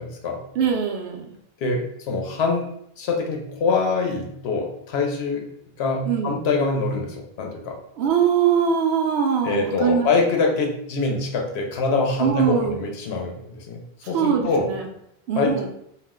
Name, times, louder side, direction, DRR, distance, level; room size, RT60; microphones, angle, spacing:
voice 1, 0.0-0.4 1.6-2.7 3.0-5.4 5.8-7.8 9.4-13.8 14.1-14.7 15.4-15.7, left 3 dB, 80° left, 1 dB, 0.8 m, -24 dB
voice 2, 0.6-1.3 6.1-6.4 8.0-10.1 12.2-12.8 14.1-14.9 15.3-15.7, right 7 dB, 80° right, 2 dB, 0.8 m, -22 dB
2.4 x 2.1 x 3.5 m, 0.74 s
omnidirectional pair, 1.1 m